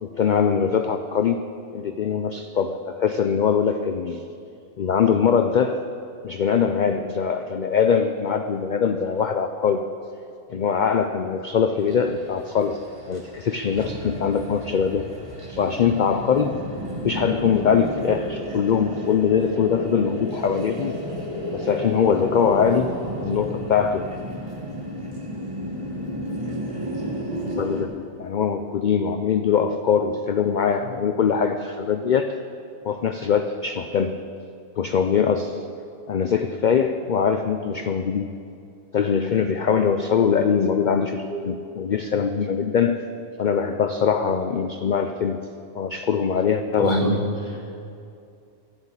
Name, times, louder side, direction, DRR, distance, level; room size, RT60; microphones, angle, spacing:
voice 1, 0.0-1.4 1.7-4.2 4.8-5.8 6.2-9.9 10.5-12.8 13.1-15.1 15.5-16.6 17.0-21.0 21.5-24.0 27.6-27.9 28.2-32.4 32.8-34.2 34.8-35.6 36.1-38.3 38.9-43.1 43.4-45.4 45.7-47.2, left 7 dB, 65° left, 7 dB, 0.4 m, -22 dB
sound 1, 11.8-27.9, equal, 25° right, 1.5 m, -33 dB
voice 2, 46.8-47.8, right 1 dB, 40° right, -5 dB, 3.2 m, -26 dB
12.5 x 8.0 x 8.9 m, 2.5 s
omnidirectional pair, 1.4 m